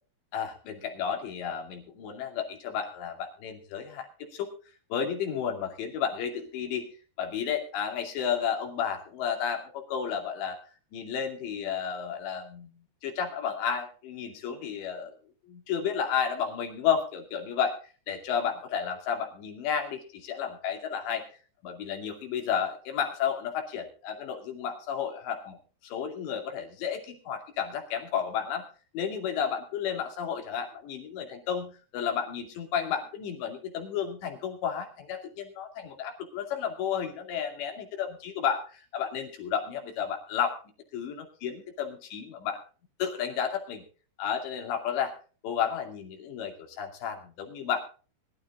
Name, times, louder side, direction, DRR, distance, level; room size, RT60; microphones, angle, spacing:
voice 1, 0.3-4.5 4.9-6.9 7.2-10.6 10.9-12.7 13.0-15.2 15.5-17.8 18.1-21.3 21.6-25.6 25.8-28.7 28.9-40.6 40.9-42.6 43.0-43.8 44.2-45.1 45.4-47.8, left 8 dB, 80° left, 4 dB, 4.7 m, -32 dB
22.5 x 12.5 x 2.4 m, 0.38 s
omnidirectional pair, 5.0 m